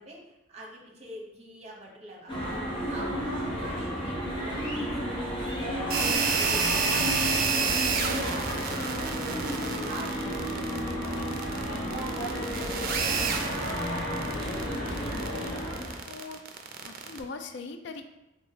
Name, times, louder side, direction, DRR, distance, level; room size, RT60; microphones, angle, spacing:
voice 1, 0.0-2.5 2.9-11.5 11.9-13.3, right 1 dB, 35° right, -2 dB, 0.9 m, -44 dB
sound 1, 2.3-16.0, equal, 25° left, 1.1 m, -32 dB
sound 2, 5.9-17.2, right 5 dB, 50° right, 0.4 m, -30 dB
voice 2, 14.9-15.3 16.0-16.4 16.8-18.1, left 3 dB, 65° left, 7 dB, 0.3 m, -41 dB
3.4 x 2.9 x 4.1 m, 0.94 s
head